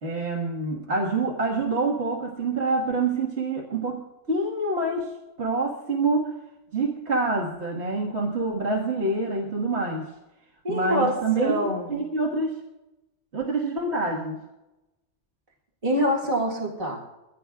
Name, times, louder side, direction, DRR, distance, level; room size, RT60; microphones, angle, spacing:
voice 1, 0.0-5.1 5.4-6.3 6.7-10.1 10.7-12.6 13.3-14.4, right 3 dB, 60° right, -2 dB, 2.0 m, -26 dB
voice 2, 10.6-11.9 15.8-17.0, equal, 30° right, -3 dB, 2.2 m, -25 dB
23.0 x 16.0 x 2.4 m, 1.0 s
omnidirectional pair, 1.3 m